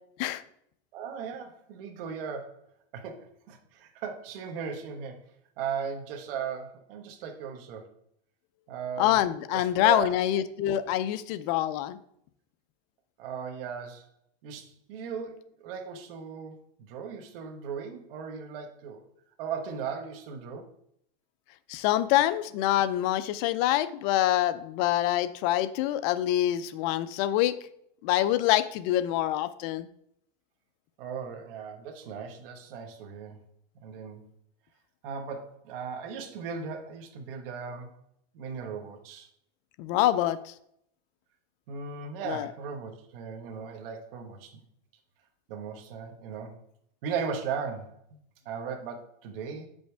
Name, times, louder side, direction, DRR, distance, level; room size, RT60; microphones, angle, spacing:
voice 1, 0.9-2.6 2.9-5.2 5.6-7.9 8.7-9.2 9.5-10.2 13.2-14.1 14.4-19.0 19.4-20.7 31.0-33.4 33.8-34.3 35.0-37.9 38.3-39.3 41.7-44.6 45.5-46.6 47.0-49.7, right 6 dB, 65° right, 4 dB, 1.3 m, -37 dB
voice 2, 9.0-12.0 21.7-27.6 28.0-29.9 39.8-40.5 42.3-42.5, left 13 dB, 45° left, 13 dB, 0.5 m, -26 dB
7.5 x 5.3 x 3.4 m, 0.72 s
supercardioid pair, 140°, 30 cm